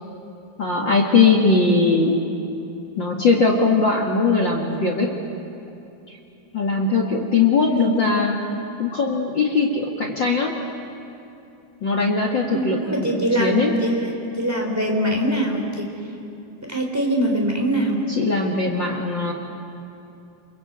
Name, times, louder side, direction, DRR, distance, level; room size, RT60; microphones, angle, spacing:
voice 1, 0.6-2.2 3.0-5.1 6.5-8.4 8.8-10.5 11.8-13.1 13.4-13.7 18.1-19.3, left 4 dB, 65° left, 1 dB, 1.1 m, -20 dB
voice 2, 7.7-8.2 12.5-15.9 16.6-18.0, equal, 5° right, 1 dB, 3.0 m, -23 dB
30.0 x 22.5 x 8.1 m, 2.8 s
omnidirectional pair, 5.2 m